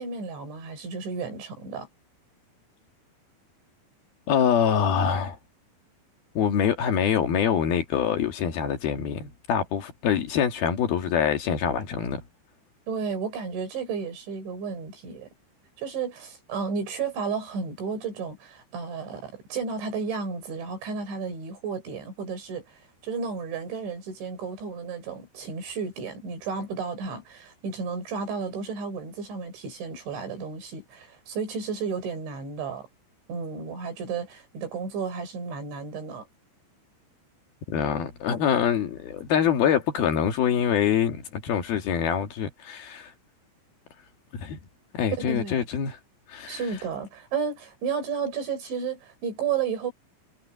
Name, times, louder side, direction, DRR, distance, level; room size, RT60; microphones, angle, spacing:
voice 1, 0.0-1.9 12.9-15.3 15.8-22.6 23.0-32.9 33.3-36.3 45.1-45.7 46.5-49.9, right 5 dB, 80° right, 8.4 m, -32 dB
voice 2, 4.3-5.4 6.3-12.2 37.7-43.1 44.3-44.6 44.9-46.0 46.3-46.6, left 8 dB, 60° left, 3.5 m, -25 dB
omnidirectional pair, 5.2 m